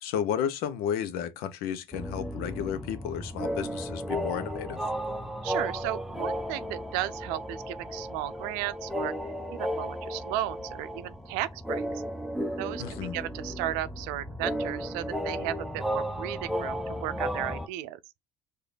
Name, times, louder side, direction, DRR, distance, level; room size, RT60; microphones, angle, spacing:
voice 1, 0.0-4.8 12.8-13.2, left 9 dB, 70° left, 0.9 m, -32 dB
sound 1, 1.9-17.7, equal, ahead, 0.8 m, -34 dB
voice 2, 5.4-9.1 9.5-12.0 12.6-18.0, right 14 dB, 75° right, 0.5 m, -35 dB
4.9 x 2.6 x 4.0 m
hypercardioid pair, 65°, 16 cm